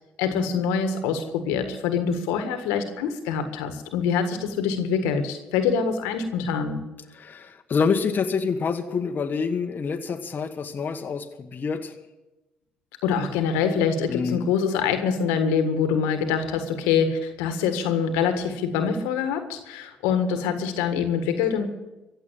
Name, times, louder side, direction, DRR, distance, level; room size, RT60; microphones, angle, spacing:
voice 1, 0.2-6.8 13.0-21.7, left 6 dB, 85° left, 8 dB, 1.6 m, -25 dB
voice 2, 7.1-12.0 14.1-14.5, left 5 dB, 45° left, 5 dB, 1.3 m, -27 dB
15.5 x 8.2 x 8.9 m, 1.0 s
hypercardioid pair, 50°, 4 cm